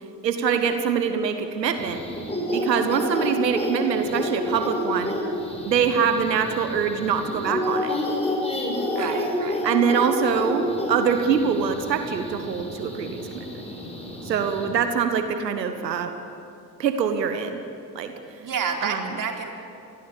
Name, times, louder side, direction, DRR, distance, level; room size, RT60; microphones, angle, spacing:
voice 1, 0.2-2.0 2.5-5.1 5.6-7.9 8.9-9.1 9.6-13.4 14.2-16.1 16.8-17.6 17.9-18.1 18.8-19.1, right 7 dB, 80° right, 8 dB, 1.5 m, -24 dB
sound 1, 1.8-14.7, left 1 dB, 10° left, 6.3 m, -29 dB
voice 2, 8.9-9.6 18.4-19.5, right 6 dB, 40° right, 2 dB, 4.2 m, -29 dB
28.5 x 21.0 x 8.6 m, 2.5 s
figure-of-eight pair, 50°, 50 cm